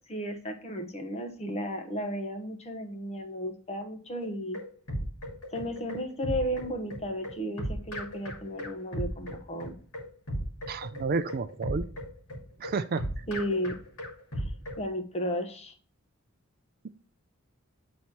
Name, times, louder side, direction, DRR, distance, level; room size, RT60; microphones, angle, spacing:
voice 1, 0.1-4.6 5.5-9.7 13.3-13.8 14.4-14.5 14.8-15.7, equal, 30° left, 4 dB, 1.1 m, -34 dB
sound 1, 4.2-14.8, equal, 75° left, 2.6 m, -36 dB
voice 2, 10.7-11.8 12.6-13.3, right 4 dB, 45° right, 11 dB, 0.4 m, -31 dB
9.4 x 4.2 x 4.5 m, 0.41 s
head